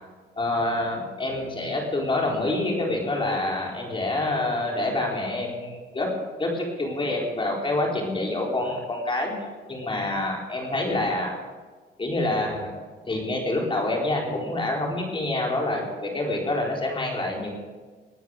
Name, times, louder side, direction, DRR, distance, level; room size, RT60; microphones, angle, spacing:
voice 1, 0.4-6.1 6.4-9.3 9.7-11.4 12.0-12.7 13.1-17.5, left 2 dB, 25° left, -1 dB, 4.3 m, -27 dB
20.0 x 9.5 x 6.6 m, 1.4 s
cardioid pair, 90°, 20 cm